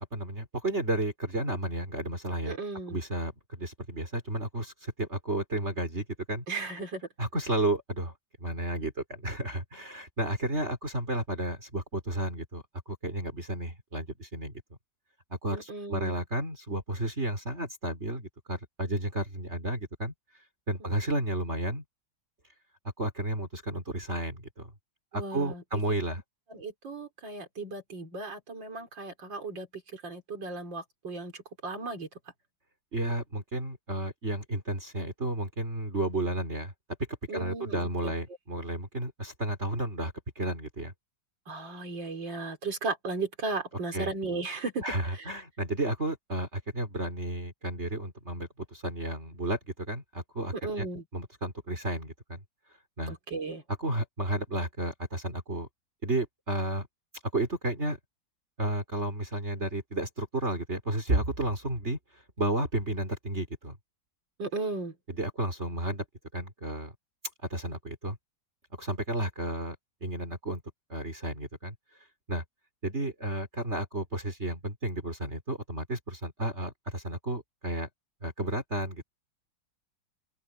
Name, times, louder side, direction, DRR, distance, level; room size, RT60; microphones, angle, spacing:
voice 1, 0.1-2.6 2.9-6.4 7.2-8.1 8.4-14.5 15.4-20.1 20.7-21.8 23.0-24.7 25.1-26.2 32.9-36.7 37.3-40.9 43.9-44.1 44.8-50.9 51.1-52.4 53.0-53.2 53.8-55.7 56.0-56.9 57.3-58.0 58.6-63.8 65.1-66.0 66.3-66.9 67.5-68.2 68.8-69.8 70.0-70.6 70.9-71.8 72.3-72.4 72.8-77.9 78.2-79.0, right 1 dB, 35° right, 4.1 m, -32 dB
voice 2, 2.5-3.0 6.5-7.1 15.5-16.2 25.1-25.6 26.5-32.1 37.3-38.1 41.5-45.3 50.6-51.0 53.1-53.6 64.4-65.0, right 3 dB, 85° right, 4.5 m, -36 dB
open air
omnidirectional pair, 2.0 m